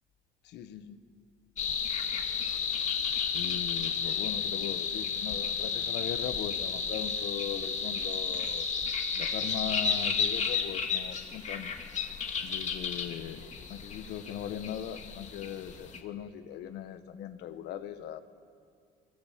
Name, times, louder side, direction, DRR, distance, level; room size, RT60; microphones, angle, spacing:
voice 1, 0.4-1.0 3.3-8.7 9.2-11.7 12.4-13.4 13.7-18.2, left 10 dB, 80° left, 10 dB, 1.4 m, -39 dB
sound 1, 1.6-16.0, left 6 dB, 45° left, 2.4 m, -32 dB
25.0 x 24.0 x 7.6 m, 2.3 s
cardioid pair, 110°, 17 cm